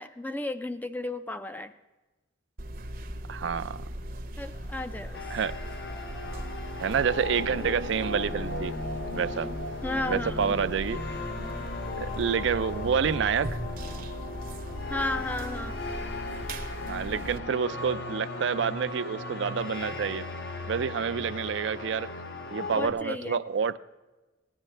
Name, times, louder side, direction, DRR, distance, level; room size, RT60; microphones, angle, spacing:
voice 1, 0.0-1.7 4.4-5.3 9.8-10.5 13.8-13.9 14.9-15.8 22.7-23.4, left 2 dB, 10° left, 10 dB, 0.3 m, -34 dB
sound 1, 2.6-17.4, equal, 50° right, 0.7 m, -38 dB
voice 2, 3.3-3.8 5.3-5.5 6.8-8.7 9.1-9.5 10.1-11.0 12.0-13.6 16.9-20.3 20.7-22.1 22.5-23.8, right 6 dB, 70° right, 14 dB, 0.4 m, -28 dB
sound 2, 4.5-22.3, equal, 80° left, 4.1 m, -53 dB
sound 3, 5.1-22.9, left 3 dB, 55° left, 0.7 m, -37 dB
16.5 x 10.0 x 3.2 m, 1.2 s
head